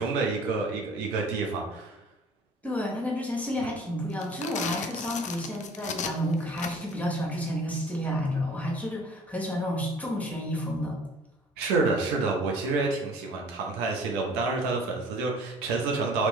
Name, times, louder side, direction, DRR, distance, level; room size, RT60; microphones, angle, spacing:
voice 1, 0.0-2.0 11.6-16.3, right 3 dB, 70° right, 1 dB, 0.6 m, -28 dB
voice 2, 2.6-11.0, equal, 10° left, -2 dB, 1.2 m, -30 dB
sound 1, 4.1-7.0, left 7 dB, 45° left, 0.4 m, -36 dB
3.0 x 2.9 x 3.1 m, 0.96 s
hypercardioid pair, 50°, 17 cm